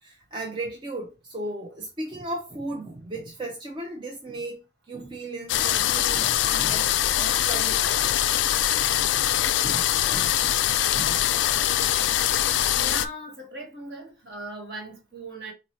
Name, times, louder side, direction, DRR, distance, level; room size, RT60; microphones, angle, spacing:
voice 1, 0.0-4.6 4.9-8.0 8.5-8.6 8.9-10.4 10.9-11.2, right 2 dB, 25° right, 0.5 m, -36 dB
sound 1, 5.5-13.1, left 12 dB, 80° left, 0.3 m, -23 dB
voice 2, 10.0-10.4 12.8-15.5, right 1 dB, 60° right, 1.5 m, -39 dB
3.9 x 2.6 x 3.1 m
head